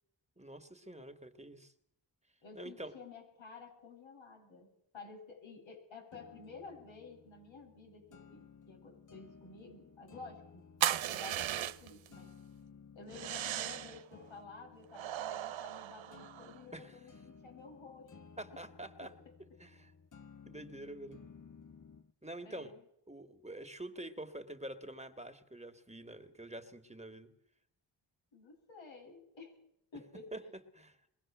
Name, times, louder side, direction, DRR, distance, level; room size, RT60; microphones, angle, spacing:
voice 1, 0.4-1.7 2.6-2.9 16.7-17.0 18.4-19.1 19.6-19.9 20.5-21.2 22.2-22.7 23.1-27.3 30.3-30.4 30.7-31.0, right 1 dB, 15° right, 8 dB, 2.3 m, -46 dB
voice 2, 2.4-4.7 4.9-12.3 12.9-18.1 19.0-19.1 22.4-22.8 28.3-29.5 29.9-30.5, left 4 dB, 75° left, 0 dB, 7.5 m, -52 dB
sound 1, 6.1-22.1, left 6 dB, 40° left, 1.3 m, -57 dB
sound 2, 10.8-12.1 13.1-14.0 14.9-16.6, right 12 dB, 85° right, 0.9 m, -37 dB
23.0 x 16.5 x 7.6 m, 0.74 s
cardioid pair, 45°, 46 cm